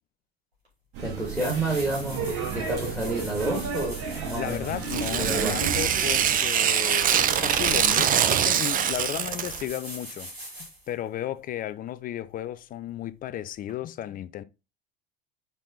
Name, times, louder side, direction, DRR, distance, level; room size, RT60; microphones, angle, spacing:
sound 1, 0.6-0.7 1.1-10.9 13.7-13.8, right 1 dB, 85° right, 3.0 m, -42 dB
sound 2, 0.9-6.4, right 6 dB, 50° right, 2.5 m, -33 dB
voice 1, 1.0-4.7 5.2-5.6, right 2 dB, ahead, 2.5 m, -29 dB
voice 2, 4.4-10.3 10.9-14.4, left 12 dB, 30° left, 0.5 m, -34 dB
Tearing, 4.8-9.6, right 9 dB, 25° right, 0.6 m, -24 dB
5.5 x 4.5 x 3.9 m
figure-of-eight pair, 65°, 31 cm